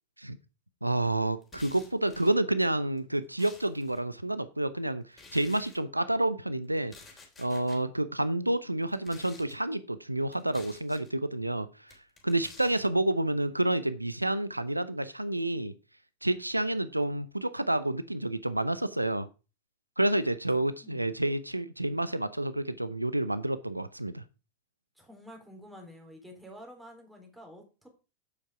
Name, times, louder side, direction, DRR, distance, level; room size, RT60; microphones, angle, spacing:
voice 1, 0.8-6.9 7.4-11.9 12.2-15.7 16.2-19.3 20.0-24.2, right 1 dB, 85° right, 14 dB, 0.5 m, -29 dB
sound 1, 1.4-2.4 3.0-4.0 5.1-5.8 6.8-7.8 8.8-9.6 10.3-11.1 11.9-12.9, left 3 dB, 15° left, 3.3 m, -52 dB
voice 2, 20.8-21.2 25.0-27.9, equal, 5° right, 2 dB, 3.7 m, -49 dB
8.5 x 7.2 x 4.9 m, 0.31 s
figure-of-eight pair, 90°, 0 cm